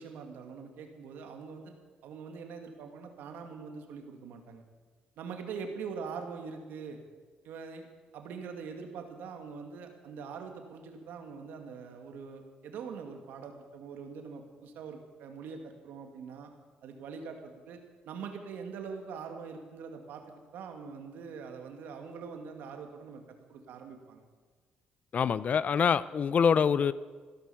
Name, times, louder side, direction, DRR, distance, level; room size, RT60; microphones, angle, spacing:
voice 1, 0.0-1.7 2.0-4.6 5.2-7.0 7.4-7.9 8.1-16.5 16.8-17.8 18.0-20.2 20.5-24.2, right 5 dB, 85° right, 4 dB, 2.2 m, -43 dB
voice 2, 25.1-26.9, left 6 dB, 50° left, 17 dB, 0.6 m, -25 dB
15.5 x 12.5 x 7.0 m, 1.4 s
cardioid pair, 95°, 3 cm